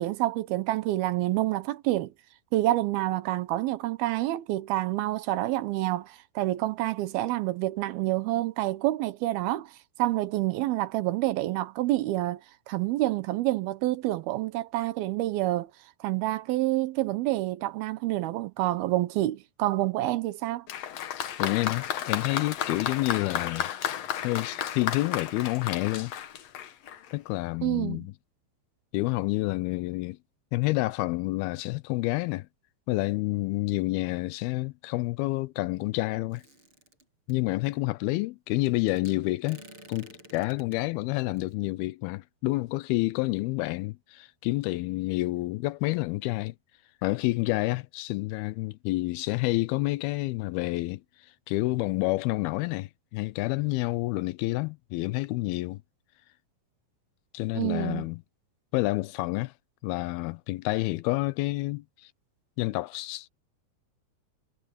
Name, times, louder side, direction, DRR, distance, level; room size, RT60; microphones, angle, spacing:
voice 1, 0.0-2.1 2.5-9.7 10.0-12.4 12.7-15.7 16.0-20.7 27.6-28.1 57.5-58.1, right 16 dB, 80° right, 2.7 m, -28 dB
Applause, 20.7-27.1, left 10 dB, 60° left, 1.8 m, -33 dB
voice 2, 21.4-23.7 24.2-26.1 27.1-28.1 28.9-30.2 30.5-32.5 32.9-36.4 37.3-39.6 39.9-46.5 47.0-51.0 51.5-55.8 57.3-58.2 58.7-59.5 59.8-62.1 62.6-63.3, left 20 dB, 80° left, 2.5 m, -29 dB
sound 1, 36.3-37.3 39.0-40.8 41.4-41.6, right 1 dB, 30° right, 8.9 m, -50 dB
omnidirectional pair, 4.5 m